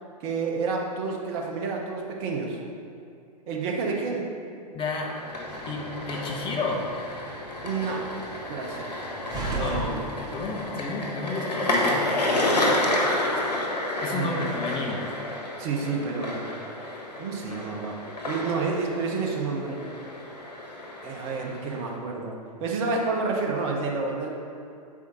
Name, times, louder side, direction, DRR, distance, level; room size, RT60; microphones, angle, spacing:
voice 1, 0.2-2.6 3.5-4.3 7.6-8.1 8.5-8.9 9.5-10.1 14.1-14.6 15.6-16.5 17.2-18.0 18.2-19.8 21.0-24.3, right 4 dB, 40° right, 0 dB, 1.3 m, -29 dB
voice 2, 4.7-5.2 5.7-6.8 9.5-10.0 10.3-12.1 14.0-15.1, left 3 dB, 25° left, -1 dB, 1.2 m, -31 dB
sound 1, 5.0-22.0, left 1 dB, 75° left, 1.4 m, -30 dB
Slam, 5.3-10.9, right 2 dB, 20° right, 1.1 m, -39 dB
8.3 x 4.9 x 4.1 m, 2.5 s
figure-of-eight pair, 110°, 21 cm